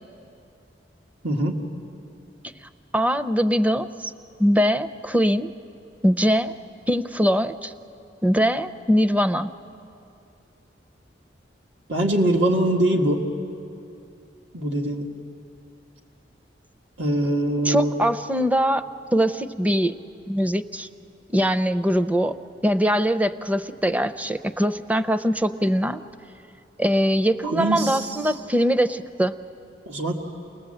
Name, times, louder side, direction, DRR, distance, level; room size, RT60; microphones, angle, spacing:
voice 1, 1.2-1.6 11.9-13.2 14.5-15.1 17.0-18.0 27.4-28.3 29.8-30.1, right 1 dB, 80° right, 1 dB, 1.9 m, -23 dB
voice 2, 2.9-4.1 4.4-5.5 6.0-6.5 6.9-7.7 8.2-9.5 17.6-18.8 19.1-19.9 20.3-20.9 21.3-22.3 22.6-26.0 26.8-29.3, equal, 10° right, 12 dB, 0.5 m, -22 dB
28.5 x 20.0 x 7.8 m, 2.6 s
head